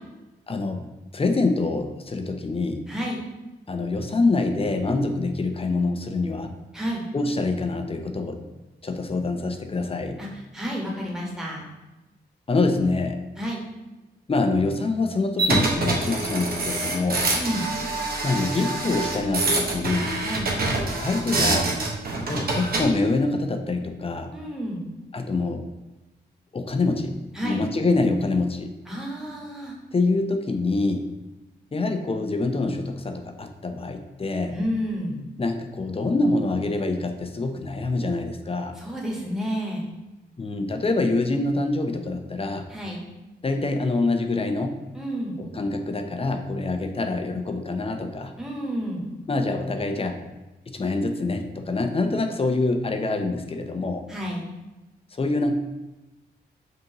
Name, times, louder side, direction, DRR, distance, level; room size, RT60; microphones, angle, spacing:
voice 1, 0.5-0.9 1.1-2.8 3.7-6.5 7.1-8.4 8.8-10.2 12.5-13.2 14.3-17.3 18.2-20.1 21.0-21.7 22.2-24.3 25.1-25.6 26.5-27.1 27.4-28.7 29.9-31.1 31.7-34.6 35.4-38.7 40.4-42.7 43.4-44.8 45.4-48.3 49.3-50.2 50.7-54.0 55.2-55.5, left 3 dB, 30° left, 6 dB, 0.6 m, -25 dB
voice 2, 2.9-3.2 6.7-7.0 10.2-10.3 10.5-11.7 13.4-13.6 17.3-17.7 20.2-20.5 24.3-24.9 27.3-27.6 28.8-29.7 34.5-35.2 38.7-39.9 42.7-43.0 44.9-45.4 48.4-49.1 54.1-54.5, equal, 5° right, -3 dB, 1.4 m, -30 dB
sound 1, 15.4-22.9, right 2 dB, 60° right, 0.9 m, -26 dB
5.2 x 2.7 x 2.9 m, 1.1 s
cardioid pair, 50°, 18 cm